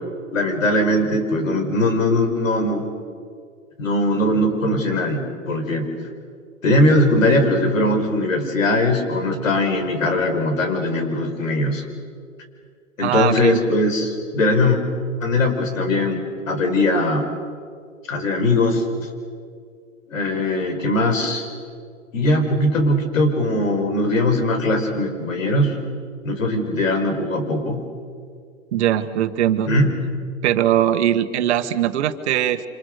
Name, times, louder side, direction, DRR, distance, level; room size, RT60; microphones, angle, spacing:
voice 1, 0.3-2.8 3.8-5.9 6.6-11.8 13.0-14.8 15.2-16.2 16.5-17.2 18.1-18.8 20.1-21.5 22.1-25.8 26.2-27.8 29.7-29.9, left 1 dB, 75° left, 5 dB, 5.0 m, -20 dB
voice 2, 13.0-13.6 28.7-29.7 30.4-32.7, right 11 dB, 55° right, 11 dB, 1.6 m, -20 dB
27.5 x 26.5 x 6.6 m, 2.2 s
hypercardioid pair, 125°, 39 cm